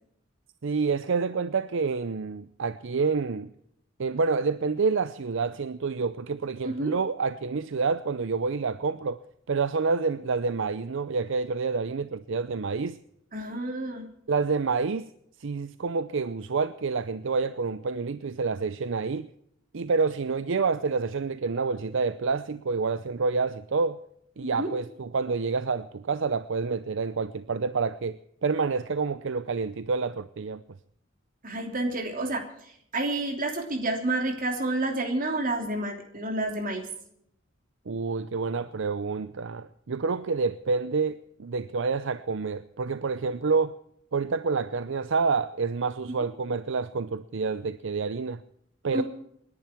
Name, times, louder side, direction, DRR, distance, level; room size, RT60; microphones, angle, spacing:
voice 1, 0.6-3.5 4.0-9.2 9.5-13.0 14.3-15.1 15.4-19.3 19.7-24.0 24.4-30.6 37.9-43.7 44.1-48.4 48.8-49.0, right 4 dB, 65° right, 0.6 m, -28 dB
voice 2, 13.3-14.1 24.4-24.7 31.4-32.4 32.9-36.9 48.9-49.0, right 2 dB, 45° right, 3.1 m, -29 dB
28.5 x 11.0 x 4.5 m
head